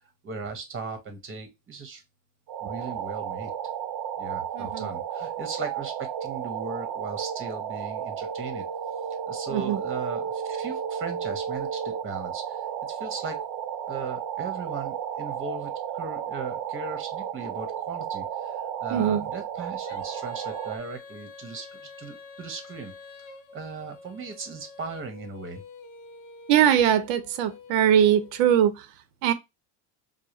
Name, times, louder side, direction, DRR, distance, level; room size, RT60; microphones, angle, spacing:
voice 1, 0.2-2.0 2.6-3.5 4.2-8.6 9.3-13.4 13.9-22.9 23.5-25.6, right 4 dB, 25° right, 1.0 m, -38 dB
sound 1, 2.5-20.8, right 8 dB, 45° right, 0.8 m, -33 dB
voice 2, 4.5-4.9 9.5-9.8 18.9-19.2 26.5-28.9 29.2-29.3, right 10 dB, 80° right, 0.8 m, -21 dB
Female singing, 19.8-28.6, left 4 dB, 40° left, 0.9 m, -47 dB
4.8 x 2.2 x 3.0 m
supercardioid pair, 125°, 46 cm